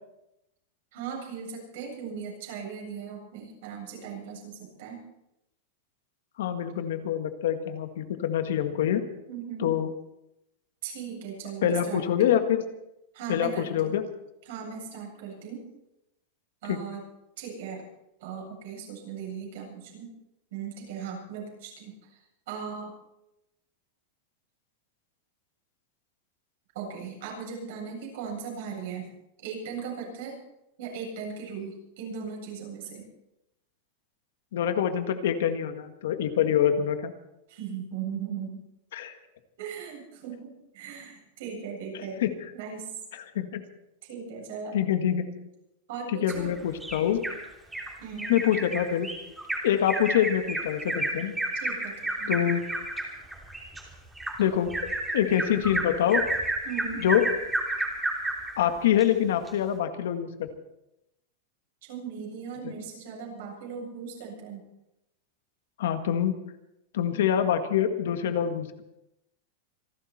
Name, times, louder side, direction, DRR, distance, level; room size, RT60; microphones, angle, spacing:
voice 1, 0.9-5.0 9.3-9.8 10.8-12.0 13.1-14.0 14.5-15.6 16.6-17.0 17.4-17.8 18.2-20.1 20.5-22.0 22.5-22.9 26.7-29.1 29.4-30.4 30.8-33.1 37.5-38.6 39.6-42.2 42.5-42.9 44.0-44.8 45.9-46.5 48.0-48.4 51.6-52.3 56.6-57.1 61.8-64.6, right 6 dB, 60° right, -1 dB, 8.0 m, -38 dB
voice 2, 6.4-9.0 9.6-9.9 11.6-12.6 13.3-14.0 16.7-16.8 34.5-37.1 38.9-39.1 41.9-42.3 43.1-43.6 44.7-45.3 46.1-47.2 48.3-49.1 49.6-51.4 52.3-52.6 54.4-54.7 55.1-56.2 57.0-57.3 58.6-60.5 62.6-62.7 65.8-66.4 66.9-68.8, left 10 dB, 75° left, 7 dB, 1.8 m, -25 dB
Bird vocalization bird call bird song, 46.3-47.4 47.7-47.9 48.2-58.5 59.0-59.1 59.5-59.6, right 2 dB, 5° right, 3.1 m, -31 dB
26.5 x 12.5 x 4.3 m, 0.87 s
supercardioid pair, 165°, 0 cm